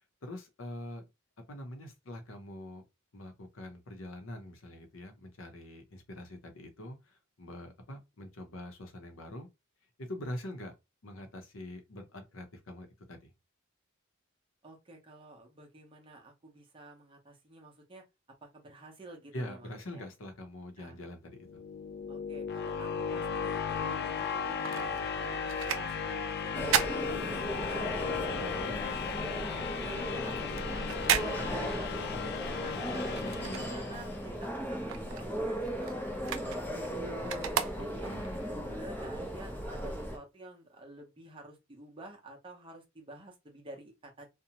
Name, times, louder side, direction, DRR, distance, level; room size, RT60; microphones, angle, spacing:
voice 1, 0.2-1.1 1.5-2.8 3.1-9.5 10.0-10.7 11.0-13.3 19.3-21.6 28.4-28.8 33.4-33.7 37.8-38.5, left 1 dB, 70° left, 0.7 m, -44 dB
voice 2, 14.6-18.1 18.4-20.1 20.8-21.0 22.1-28.1 28.6-33.0 33.5-37.5 37.8-38.1 38.5-44.3, right 1 dB, 25° right, 0.7 m, -50 dB
sound 1, 21.3-34.3, left 6 dB, 50° left, 0.4 m, -36 dB
sound 2, 24.2-27.9 28.2-34.2 34.5-38.3 38.8-38.9, right 9 dB, 70° right, 0.4 m, -36 dB
sound 3, 26.5-40.2, equal, 10° left, 0.6 m, -37 dB
2.6 x 2.1 x 2.8 m
head